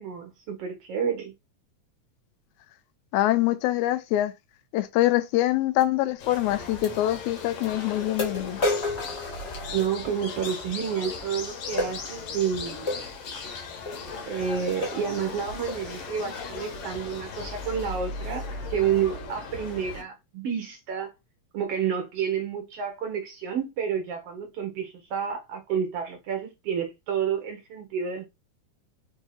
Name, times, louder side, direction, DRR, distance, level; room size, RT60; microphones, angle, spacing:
voice 1, 0.0-1.3 9.7-12.8 14.3-18.4 18.7-21.1 21.5-28.3, right 7 dB, 70° right, 1.5 m, -29 dB
voice 2, 3.1-4.3 4.7-8.6, left 14 dB, 85° left, 1.9 m, -24 dB
sound 1, 5.8-5.9 6.8-6.9 7.6-7.7 8.2-10.1 11.8-12.0 12.9-13.1 13.8-14.0 14.4-14.5 14.8-15.1 15.7-15.9, left 2 dB, 35° left, 1.0 m, -30 dB
sound 2, 6.2-20.0, left 4 dB, 65° left, 1.8 m, -37 dB
4.7 x 2.6 x 4.1 m
omnidirectional pair, 3.4 m